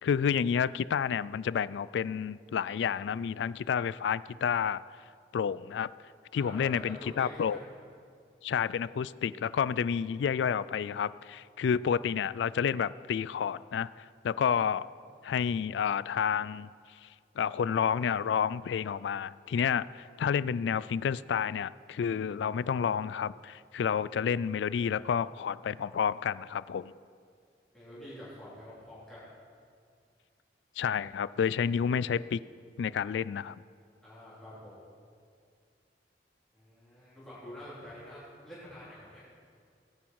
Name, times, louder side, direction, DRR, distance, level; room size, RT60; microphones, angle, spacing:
voice 1, 0.0-4.8 5.3-5.9 6.3-7.6 8.4-14.9 15.2-16.7 17.4-26.9 30.8-32.4 32.8-33.6, left 7 dB, 80° left, 19 dB, 0.3 m, -30 dB
voice 2, 6.4-7.6 27.7-29.3 34.0-34.7 36.5-39.2, left 1 dB, 5° left, -11 dB, 3.9 m, -47 dB
17.5 x 10.5 x 4.7 m, 2.2 s
head